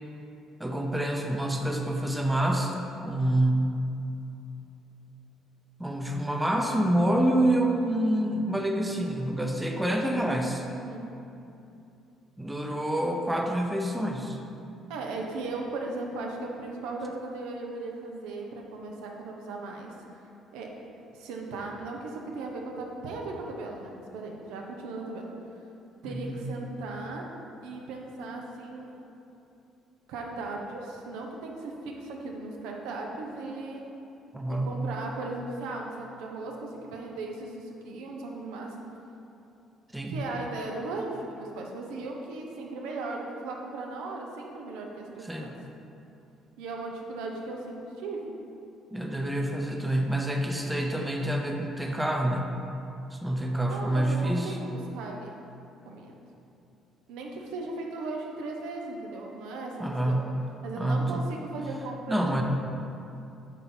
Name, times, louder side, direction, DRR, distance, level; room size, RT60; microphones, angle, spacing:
voice 1, 0.6-3.8 5.8-10.7 12.4-14.4 26.0-26.4 34.3-34.8 39.9-40.2 45.2-45.5 48.9-52.6 53.1-54.6 59.8-60.3 60.8-61.3 62.1-62.4, right 1 dB, 5° right, 2 dB, 0.6 m, -27 dB
voice 2, 10.7-11.0 14.9-19.9 20.5-20.7 21.1-25.3 26.0-27.3 27.6-29.0 30.1-33.8 34.5-38.7 40.1-45.3 46.6-48.3 53.6-55.3 55.8-56.1 57.1-60.2 60.6-62.4, right 3 dB, 90° right, 0 dB, 0.8 m, -37 dB
8.2 x 2.8 x 5.9 m, 2.8 s
cardioid pair, 105°, 0 cm